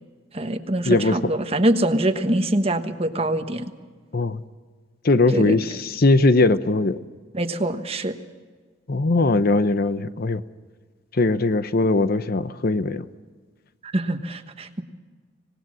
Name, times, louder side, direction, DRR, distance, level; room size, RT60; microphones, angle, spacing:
voice 1, 0.3-3.7 5.3-5.6 7.3-8.2 13.8-14.8, right 1 dB, 30° right, 8 dB, 1.3 m, -24 dB
voice 2, 0.8-1.2 4.1-4.4 5.0-7.0 8.9-10.4 11.1-13.0, left 2 dB, 50° left, 12 dB, 0.8 m, -20 dB
26.5 x 19.0 x 6.3 m, 1.5 s
head